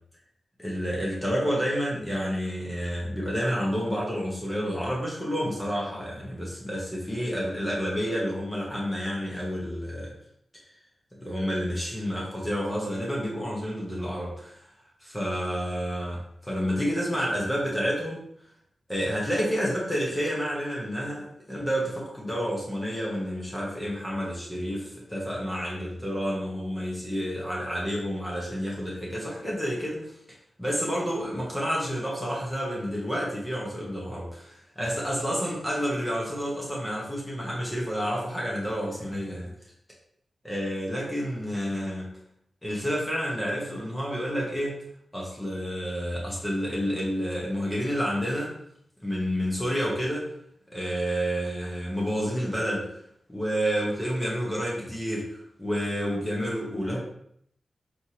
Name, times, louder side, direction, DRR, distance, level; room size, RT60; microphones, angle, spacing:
voice 1, 0.6-10.1 11.2-14.7 15.0-18.2 18.9-24.8 25.1-30.1 30.6-39.5 40.4-42.1 42.6-44.8 45.1-48.5 49.0-50.2 50.7-52.9 53.3-57.0, equal, 10° left, -4 dB, 1.1 m, -29 dB
4.4 x 3.3 x 2.9 m, 0.69 s
wide cardioid pair, 125°, 0 cm